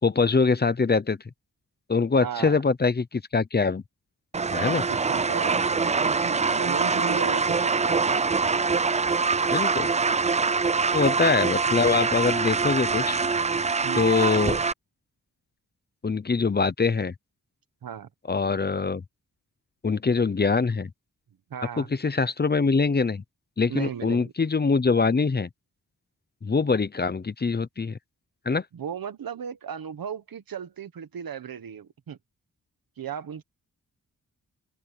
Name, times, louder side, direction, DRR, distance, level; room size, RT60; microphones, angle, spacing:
voice 1, 0.0-1.2 1.9-3.8 4.5-4.8 9.5-9.9 10.9-13.2 13.9-14.6 16.0-17.1 18.3-19.0 19.8-20.9 21.8-23.2 23.6-25.5 26.4-28.0 28.5-28.6, left 4 dB, 30° left, 0.8 m, -23 dB
voice 2, 2.2-2.6 4.9-8.0 10.9-11.4 13.8-14.2 17.8-18.1 21.5-21.9 23.7-24.3 28.7-32.2 33.0-33.4, right 8 dB, 90° right, 1.4 m, -36 dB
sound 1, 4.3-14.7, right 4 dB, 20° right, 0.4 m, -24 dB
open air
wide cardioid pair, 145°, 34 cm